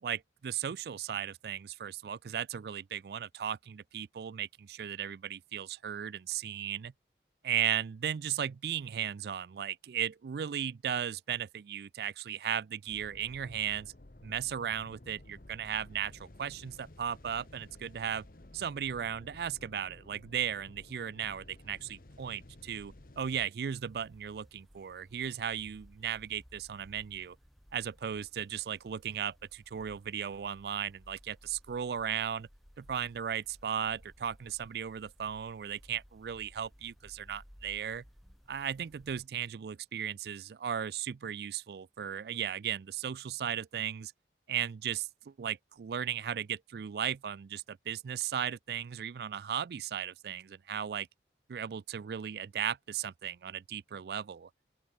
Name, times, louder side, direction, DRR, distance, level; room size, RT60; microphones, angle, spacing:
voice 1, 0.0-6.9 7.4-13.9 14.2-18.2 18.5-27.4 27.7-32.5 32.8-38.0 38.5-44.1 44.5-51.1 51.5-54.5, right 9 dB, 60° right, 0.3 m, -36 dB
sound 1, 12.9-23.5, left 1 dB, 50° left, 1.3 m, -54 dB
sound 2, 23.7-39.3, equal, ahead, 4.1 m, -59 dB
open air
head